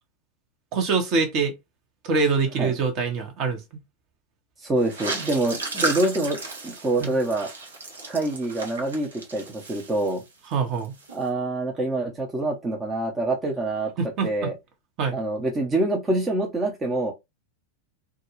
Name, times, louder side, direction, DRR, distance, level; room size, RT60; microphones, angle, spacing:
voice 1, 0.7-1.5 2.0-3.6 7.0-7.1 10.5-10.9 14.0-14.5 15.0-15.2, right 4 dB, 45° right, 0.9 m, -24 dB
voice 2, 4.6-6.4 6.6-7.5 8.1-10.2 11.1-13.9 14.2-14.5 15.1-17.1, right 2 dB, 20° right, 0.7 m, -26 dB
sound 1, 4.8-10.5 10.8-11.2, right 3 dB, 80° right, 0.9 m, -34 dB
2.3 x 2.2 x 3.0 m
figure-of-eight pair, 95°, 0 cm